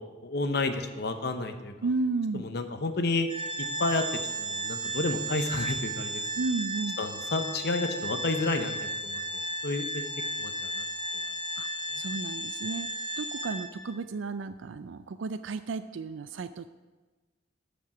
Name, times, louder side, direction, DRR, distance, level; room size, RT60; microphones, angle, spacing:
voice 1, 0.2-1.7 2.3-3.3 3.8-4.1 4.4-6.3 7.0-9.2 9.6-10.1 10.4-10.8, left 2 dB, 60° left, 7 dB, 0.9 m, -30 dB
voice 2, 1.8-2.4 6.4-7.0 11.6-11.7 12.0-12.9 13.2-16.7, right 3 dB, 90° right, 11 dB, 0.4 m, -33 dB
Organ, 3.3-13.9, right 1 dB, 25° right, 1.3 m, -34 dB
12.5 x 5.2 x 6.0 m, 1.2 s
head